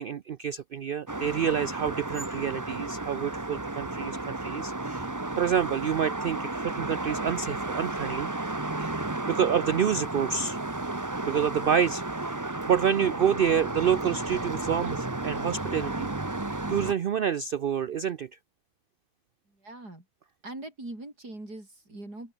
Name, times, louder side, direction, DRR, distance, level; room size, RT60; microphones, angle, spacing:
voice 1, 0.0-5.1 5.4-8.3 8.8-10.6 11.2-12.0 12.7-16.1 16.7-18.3, right 8 dB, 60° right, 0.5 m, -28 dB
sound 1, 1.1-16.9, right 2 dB, 15° right, 1.0 m, -33 dB
voice 2, 19.5-20.1 20.4-22.3, right 2 dB, 85° right, 8.8 m, -42 dB
open air
omnidirectional pair, 1.7 m